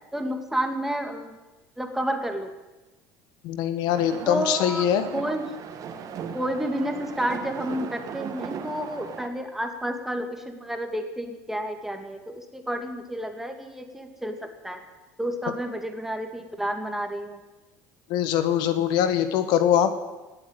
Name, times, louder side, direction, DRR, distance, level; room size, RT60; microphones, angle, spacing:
voice 1, 0.1-1.3 1.8-2.5 4.3-5.5 6.3-14.8 15.2-17.4, right 1 dB, 5° right, 5 dB, 2.2 m, -30 dB
voice 2, 3.4-5.1 18.1-20.0, left 10 dB, 70° left, 10 dB, 1.4 m, -23 dB
sound 1, 3.9-9.3, right 7 dB, 50° right, 1.9 m, -37 dB
17.5 x 8.2 x 9.1 m, 1.1 s
supercardioid pair, 100°, 8 cm